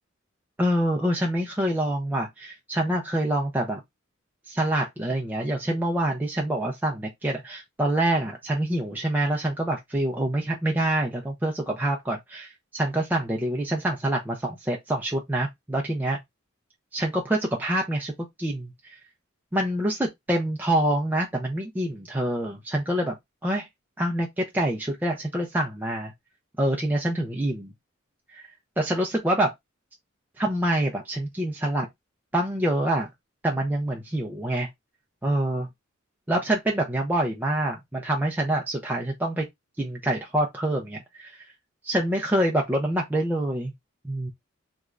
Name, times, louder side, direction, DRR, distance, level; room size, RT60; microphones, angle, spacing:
voice 1, 0.6-3.8 4.5-16.2 16.9-18.1 18.4-19.0 19.5-23.1 23.4-23.7 24.0-26.1 26.6-27.7 28.3-28.5 28.8-29.5 30.4-31.9 32.3-33.1 33.4-34.7 35.2-35.7 36.3-39.4 39.8-41.4 41.8-43.7 44.0-44.3, right 1 dB, 10° right, 0.4 m, -26 dB
3.0 x 2.3 x 2.4 m
head